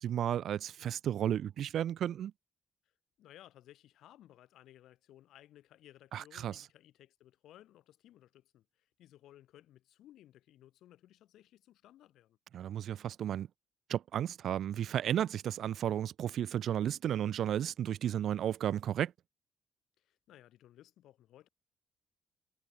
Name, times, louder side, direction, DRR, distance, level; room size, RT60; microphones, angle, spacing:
voice 1, 0.0-2.3 6.1-6.6 12.5-13.5 13.9-19.1, right 10 dB, 70° right, 0.5 m, -33 dB
voice 2, 3.2-12.4 20.0-21.5, left 13 dB, 80° left, 4.6 m, -59 dB
cardioid pair, 90°, 0 cm